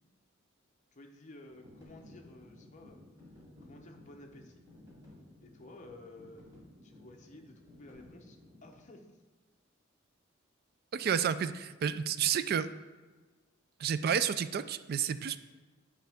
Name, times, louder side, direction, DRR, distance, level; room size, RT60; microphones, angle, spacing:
voice 1, 0.9-3.0 3.6-4.6 5.4-6.4 6.8-9.1, left 2 dB, 35° left, 2 dB, 0.8 m, -53 dB
sound 1, 1.5-8.8, left 1 dB, 20° right, 2.4 m, -56 dB
voice 2, 10.9-12.7 13.8-15.4, right 8 dB, 50° right, 13 dB, 0.3 m, -30 dB
9.1 x 4.9 x 3.5 m, 1.3 s
head